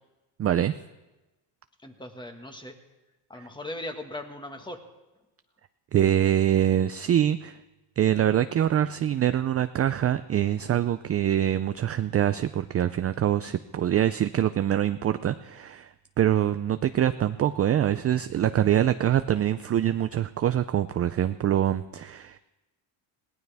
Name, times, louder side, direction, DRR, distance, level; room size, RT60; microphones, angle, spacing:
voice 1, 0.4-0.7 3.3-3.5 5.9-7.6 8.0-22.4, right 11 dB, 35° right, 11 dB, 0.4 m, -24 dB
voice 2, 1.8-2.7 3.3-4.8, left 1 dB, 10° left, 4 dB, 1.6 m, -38 dB
20.5 x 17.5 x 3.5 m, 1.1 s
cardioid pair, 115°, 47 cm